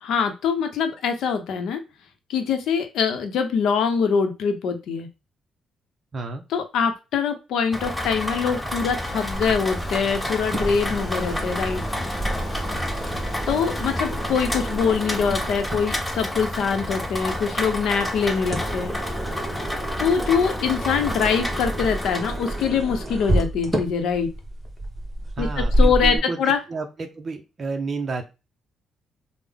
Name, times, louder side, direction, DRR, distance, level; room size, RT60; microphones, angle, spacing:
voice 1, 0.0-1.8 2.3-5.1 6.5-11.8 13.5-18.9 20.0-24.3 25.4-26.6, left 6 dB, 80° left, 7 dB, 0.6 m, -24 dB
voice 2, 6.1-6.4 25.4-28.2, right 4 dB, 40° right, 4 dB, 0.5 m, -31 dB
Rain, 7.7-22.7, left 1 dB, 5° left, 0.6 m, -30 dB
sound 1, 8.6-15.0, equal, 30° left, 0.9 m, -39 dB
sound 2, 9.3-26.2, right 1 dB, 20° right, 0.9 m, -29 dB
3.5 x 2.0 x 3.4 m, 0.28 s
cardioid pair, 90°, 0 cm